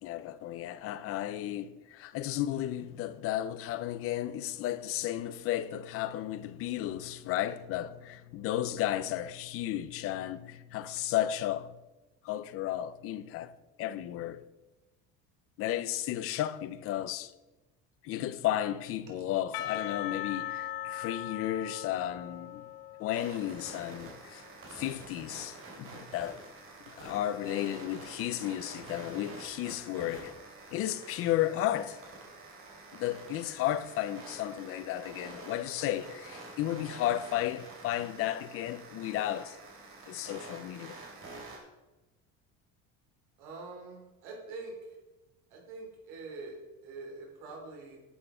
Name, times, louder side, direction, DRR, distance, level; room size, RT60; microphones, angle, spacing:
voice 1, 0.0-11.8 12.2-13.5 13.8-14.4 15.6-17.3 18.0-22.7 23.0-24.4 24.7-26.4 27.0-30.3 30.7-32.0 32.9-39.6 40.1-41.0, left 12 dB, 40° left, 0.6 m, -33 dB
Percussion / Church bell, 19.5-24.8, left 12 dB, 80° left, 0.9 m, -40 dB
sound 1, 23.1-41.6, right 3 dB, 35° right, 3.5 m, -48 dB
voice 2, 43.4-44.7 45.5-48.0, right 3 dB, 75° right, 3.3 m, -44 dB
11.0 x 8.8 x 5.0 m
cardioid pair, 175°, 34 cm